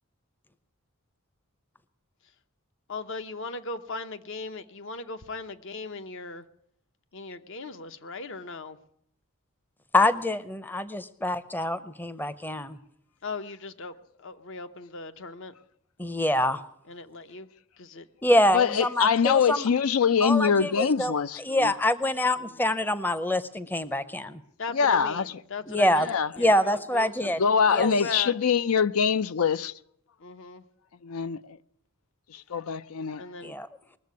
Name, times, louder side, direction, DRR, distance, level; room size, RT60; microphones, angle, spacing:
voice 1, 2.9-6.4 7.1-8.8 13.2-15.5 16.9-17.5 17.8-18.1 22.4-22.6 24.6-27.1 27.7-28.3 30.2-30.6 33.2-33.6, left 3 dB, 60° left, 0.9 m, -38 dB
voice 2, 9.9-12.8 16.0-16.6 18.2-19.7 20.2-21.1 21.4-24.4 25.7-26.1 26.3-27.4 27.7-27.9 33.4-33.7, left 1 dB, 10° left, 0.6 m, -25 dB
voice 3, 18.5-21.7 24.7-25.3 26.1-26.3 27.2-29.7 31.0-31.4 32.3-33.2, left 6 dB, 80° left, 0.5 m, -24 dB
20.5 x 7.5 x 9.4 m
head